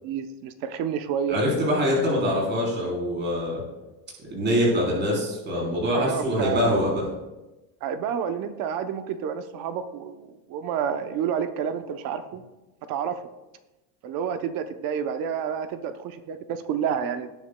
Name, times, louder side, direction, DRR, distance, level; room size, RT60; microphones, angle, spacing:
voice 1, 0.0-1.4 5.9-6.7 7.8-12.4 12.9-13.2 14.0-17.3, right 8 dB, 45° right, 9 dB, 0.7 m, -29 dB
voice 2, 1.3-3.6 4.2-7.0, equal, 25° right, -4 dB, 3.6 m, -24 dB
18.0 x 9.3 x 2.2 m, 1.0 s
cardioid pair, 170°, 47 cm